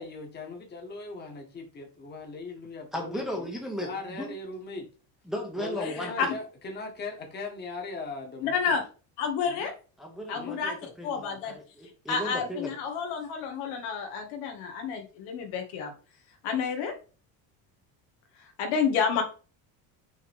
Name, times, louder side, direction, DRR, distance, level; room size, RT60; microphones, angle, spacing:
voice 1, 0.0-3.5 3.8-4.9 5.6-8.8 9.5-9.7 10.3-10.6, left 3 dB, 25° left, 2 dB, 1.7 m, -39 dB
voice 2, 2.9-4.3 5.3-6.3 10.0-12.8, left 1 dB, ahead, 1 dB, 1.1 m, -36 dB
voice 3, 5.8-6.3 8.4-8.8 9.2-9.7 10.3-10.7 11.0-11.5 12.1-15.9 16.4-16.9 18.4-19.2, left 6 dB, 75° left, 4 dB, 2.1 m, -30 dB
6.2 x 3.9 x 5.4 m, 0.35 s
cardioid pair, 170°, 39 cm